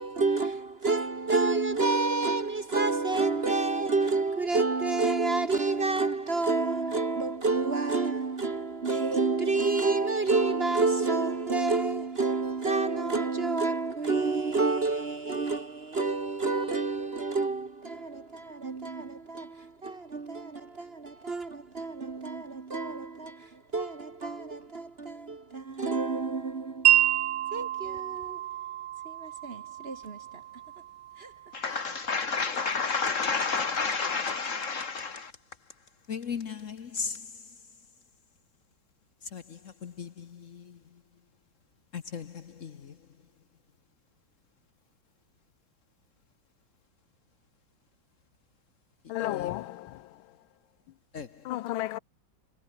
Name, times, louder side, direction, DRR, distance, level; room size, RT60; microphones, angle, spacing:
voice 1, 0.0-28.4 29.0-30.4 31.2-31.3 31.7-31.8, right 3 dB, 35° right, 1.3 m, -29 dB
Wind chime, 26.9-32.9, right 12 dB, 80° right, 1.7 m, -29 dB
voice 2, 31.5-35.3 36.1-37.1 39.3-39.4 39.8-40.1 41.9-42.2 42.6-42.7 49.4-49.5 51.1-51.3, left 5 dB, 50° left, 1.1 m, -31 dB
voice 3, 49.1-50.1 51.4-52.0, left 15 dB, 85° left, 1.4 m, -33 dB
omnidirectional pair, 2.2 m